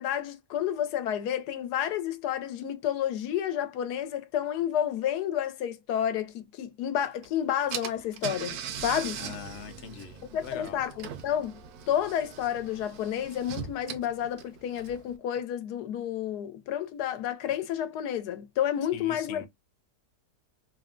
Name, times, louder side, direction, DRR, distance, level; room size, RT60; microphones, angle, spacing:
voice 1, 0.0-9.3 10.3-11.6 11.9-19.5, left 10 dB, 90° left, 1.2 m, -30 dB
Car / Engine, 7.2-7.3 7.7-15.1, right 8 dB, 75° right, 1.1 m, -40 dB
voice 2, 9.2-10.8 18.9-19.5, left 7 dB, 65° left, 0.7 m, -42 dB
3.3 x 2.1 x 2.3 m
omnidirectional pair, 1.7 m